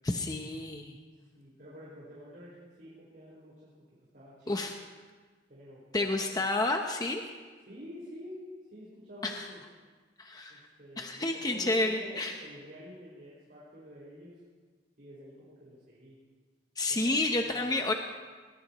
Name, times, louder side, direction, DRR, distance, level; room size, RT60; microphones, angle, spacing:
voice 1, 0.0-1.0 4.5-4.7 5.9-7.2 9.2-9.4 10.2-10.6 11.0-12.3 16.8-17.9, left 2 dB, 20° left, 3 dB, 0.8 m, -30 dB
voice 2, 1.3-3.7 4.1-4.5 5.5-6.1 6.3-6.5 7.7-9.6 10.5-14.4 15.0-16.2 16.9-17.7, equal, 55° right, -9 dB, 5.4 m, -48 dB
21.0 x 20.5 x 3.1 m, 1.4 s
head